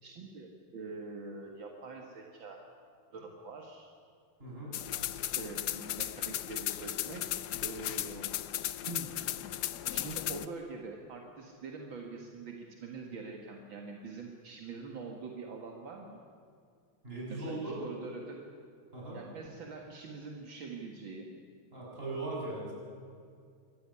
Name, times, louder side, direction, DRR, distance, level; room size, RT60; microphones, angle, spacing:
voice 1, 0.0-2.6 3.1-3.9 5.4-8.3 8.9-9.1 9.9-16.2 17.3-18.4 19.1-21.3, right 4 dB, 70° right, 1 dB, 2.5 m, -44 dB
voice 2, 4.4-4.7 17.0-17.8 18.9-19.2 21.7-22.7, right 2 dB, 25° right, -4 dB, 7.1 m, -39 dB
sound 1, 4.7-10.5, left 12 dB, 65° left, 1.1 m, -36 dB
25.0 x 14.5 x 9.7 m, 2.3 s
omnidirectional pair, 2.2 m